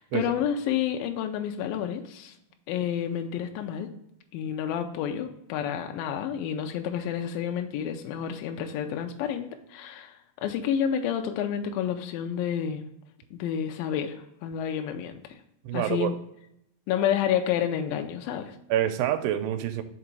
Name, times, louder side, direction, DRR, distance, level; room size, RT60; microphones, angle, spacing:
voice 1, 0.0-2.3 2.7-3.9 4.3-12.8 13.3-15.4 15.7-16.2 16.9-18.6, left 9 dB, 85° left, 5 dB, 2.0 m, -30 dB
voice 2, 15.6-16.1 18.7-19.8, right 11 dB, 85° right, 8 dB, 2.6 m, -27 dB
6.1 x 3.7 x 4.5 m, 0.81 s
omnidirectional pair, 4.6 m